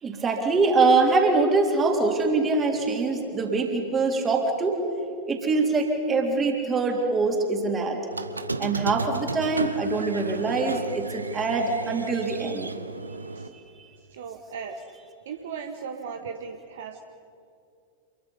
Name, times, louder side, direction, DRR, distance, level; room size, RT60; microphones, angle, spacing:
voice 1, 0.0-4.8 5.3-8.0 8.6-12.7, right 3 dB, 20° right, 2 dB, 3.6 m, -24 dB
Squeak, 8.1-13.5, right 3 dB, 80° right, 0.9 m, -33 dB
voice 2, 14.1-14.8 15.2-17.0, right 6 dB, 60° right, 6 dB, 1.3 m, -36 dB
27.5 x 22.5 x 5.5 m, 2.5 s
figure-of-eight pair, 90°, 0 cm